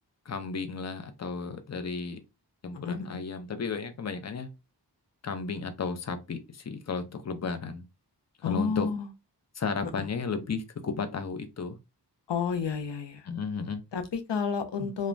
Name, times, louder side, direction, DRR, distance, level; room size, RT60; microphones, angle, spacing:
voice 1, 0.3-2.2 2.6-4.5 5.2-7.8 8.4-8.9 9.6-11.8 13.3-13.8 14.8-14.9, left 5 dB, 40° left, 0.5 m, -34 dB
voice 2, 8.4-9.1 10.0-10.1 12.3-13.2 13.9-15.1, left 6 dB, 85° left, 0.6 m, -30 dB
2.4 x 2.1 x 3.1 m
wide cardioid pair, 40°, 42 cm